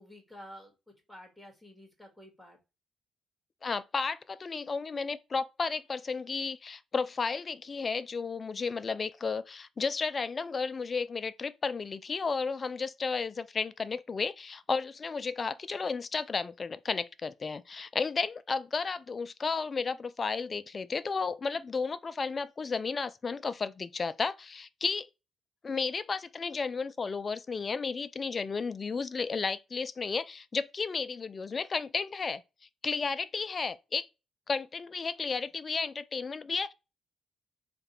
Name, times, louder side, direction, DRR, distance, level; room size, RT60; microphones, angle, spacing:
voice 1, 0.0-2.6, equal, 5° left, 1.5 m, -51 dB
voice 2, 3.6-25.1 25.6-32.4 32.8-34.1 34.5-36.7, left 4 dB, 35° left, 0.4 m, -33 dB
3.4 x 2.4 x 4.3 m
cardioid pair, 90°, 0 cm